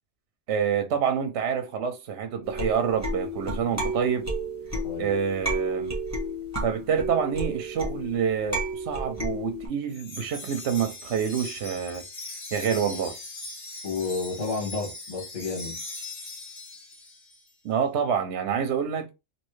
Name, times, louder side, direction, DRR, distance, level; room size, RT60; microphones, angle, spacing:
voice 1, 0.5-4.3 5.0-6.0 6.6-12.0 12.5-13.2 17.6-19.1, right 7 dB, 65° right, 0.8 m, -27 dB
sound 1, 2.4-9.7, right 1 dB, 15° right, 1.0 m, -32 dB
Wind chime, 9.9-17.4, left 3 dB, 30° left, 0.7 m, -40 dB
voice 2, 13.8-15.8, left 4 dB, 75° left, 1.8 m, -31 dB
3.1 x 2.9 x 3.1 m
omnidirectional pair, 1.3 m